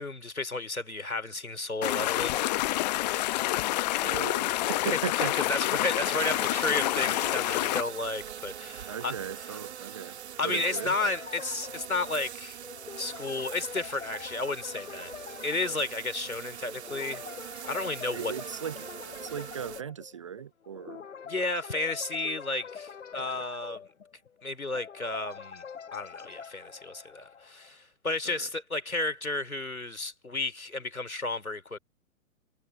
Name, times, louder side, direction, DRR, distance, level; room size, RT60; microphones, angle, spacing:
voice 1, 0.0-2.5 5.1-9.6 9.9-10.1 10.4-12.6 13.0-15.1 15.4-17.2 17.7-18.3 21.3-23.8 24.4-25.6 25.9-31.8, left 2 dB, 85° left, 3.3 m, -32 dB
sound 1, 1.8-7.8, left 17 dB, 30° left, 0.9 m, -28 dB
voice 2, 4.0-5.3 5.9-6.5 8.9-10.9 18.1-18.9 19.2-21.1 23.3-23.4 28.3-28.5, right 8 dB, 25° right, 0.4 m, -38 dB
sound 2, 6.0-19.8, right 9 dB, 50° right, 1.9 m, -43 dB
sound 3, 10.5-27.7, left 7 dB, 60° left, 7.9 m, -45 dB
figure-of-eight pair, 115°, 41 cm